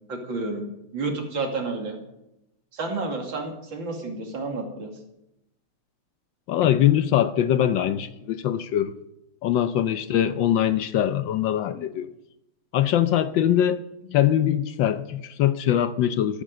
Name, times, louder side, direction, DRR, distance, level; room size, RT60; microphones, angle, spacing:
voice 1, 0.1-2.0 2.7-4.9, right 3 dB, 65° right, 3.1 m, -30 dB
voice 2, 6.5-9.0 9.4-12.1 12.7-16.4, left 11 dB, 70° left, 1.3 m, -22 dB
13.5 x 12.0 x 6.7 m
omnidirectional pair, 2.3 m